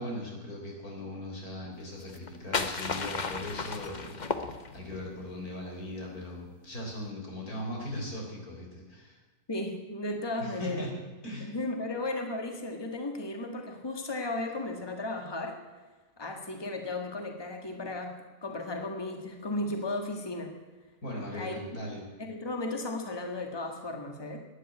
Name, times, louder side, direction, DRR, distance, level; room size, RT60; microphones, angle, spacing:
voice 1, 0.0-9.2 10.4-10.9 11.2-11.5 21.0-22.0, left 1 dB, 90° left, 0 dB, 4.4 m, -39 dB
sound 1, 2.0-5.0, left 4 dB, 35° left, 1.0 m, -34 dB
voice 2, 9.5-10.9 11.4-15.6 16.2-20.5 21.3-21.8 22.2-24.4, left 2 dB, 15° left, 4 dB, 1.7 m, -35 dB
12.5 x 9.9 x 9.9 m, 1.3 s
omnidirectional pair, 1.5 m